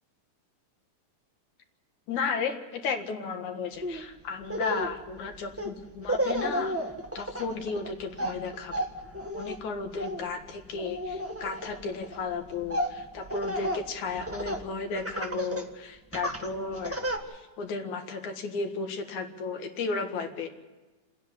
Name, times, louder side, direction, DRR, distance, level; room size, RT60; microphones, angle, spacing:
voice 1, 2.1-6.7 7.1-8.9 9.3-17.0 17.3-20.5, left 4 dB, 75° left, 5 dB, 3.1 m, -34 dB
Laughter, 3.8-4.0 4.4-14.7 15.0-15.7 16.1-17.2, equal, 10° right, 0.8 m, -33 dB
29.0 x 10.0 x 9.9 m, 1.2 s
omnidirectional pair, 3.4 m